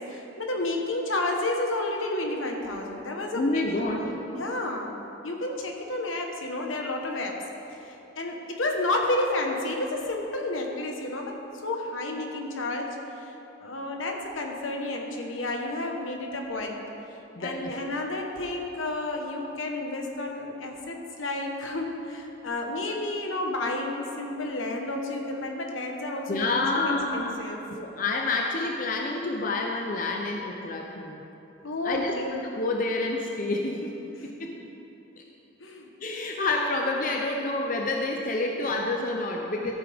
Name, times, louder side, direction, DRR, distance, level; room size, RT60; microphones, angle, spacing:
voice 1, 0.0-4.9 5.2-7.4 7.7-11.4 11.6-13.3 13.6-16.8 17.4-27.6 31.6-32.3 34.2-34.3 35.6-35.9, left 2 dB, 80° left, 2 dB, 1.2 m, -31 dB
voice 2, 3.3-4.1 17.4-17.7 26.3-27.4 27.7-31.2 31.8-34.6 35.2-35.3 36.0-39.8, left 2 dB, 40° left, 1 dB, 0.6 m, -28 dB
14.0 x 8.6 x 3.5 m, 3.0 s
head